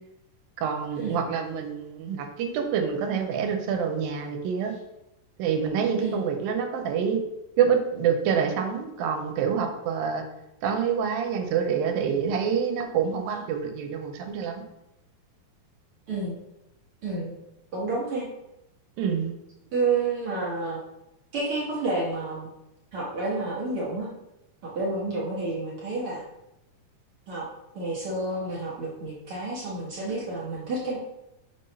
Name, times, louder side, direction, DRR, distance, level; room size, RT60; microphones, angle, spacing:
voice 1, 0.6-4.7 5.4-7.2 7.6-10.2 10.6-14.6 19.0-19.3, right 7 dB, 90° right, 5 dB, 2.5 m, -26 dB
voice 2, 16.1-16.4 17.0-17.4 17.7-18.3 19.7-20.8 21.3-22.5 22.9-24.1 24.6-26.2 27.3-27.5 27.7-31.0, right 3 dB, 65° right, -4 dB, 1.4 m, -29 dB
6.1 x 3.9 x 5.3 m, 0.90 s
omnidirectional pair, 4.0 m